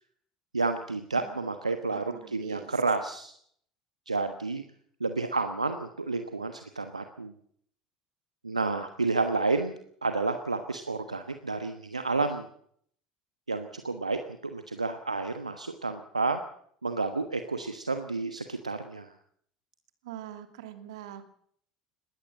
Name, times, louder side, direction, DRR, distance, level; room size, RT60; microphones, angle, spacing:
voice 1, 0.5-3.3 4.1-4.6 5.0-7.3 8.4-9.7 10.0-12.4 13.5-14.2 14.5-16.4 16.8-19.1, right 3 dB, 85° right, 8 dB, 1.2 m, -30 dB
voice 2, 1.1-1.5 1.9-2.7 20.0-21.3, right 11 dB, 65° right, 8 dB, 2.6 m, -44 dB
20.5 x 17.0 x 7.7 m, 0.64 s
figure-of-eight pair, 70°, 4 cm